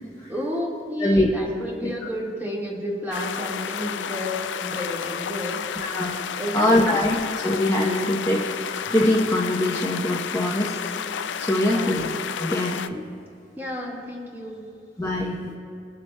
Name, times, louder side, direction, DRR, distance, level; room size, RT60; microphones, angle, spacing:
voice 1, 0.3-5.9 6.4-7.0 11.7-12.1 13.6-14.6, equal, 10° right, -3 dB, 1.7 m, -31 dB
sound 1, 3.1-12.9, left 8 dB, 80° left, 0.4 m, -31 dB
voice 2, 5.8-6.1 6.5-10.8 11.4-12.0 12.4-13.0 15.0-15.5, left 1 dB, 15° left, -4 dB, 0.8 m, -23 dB
22.0 x 7.4 x 2.2 m, 2.7 s
head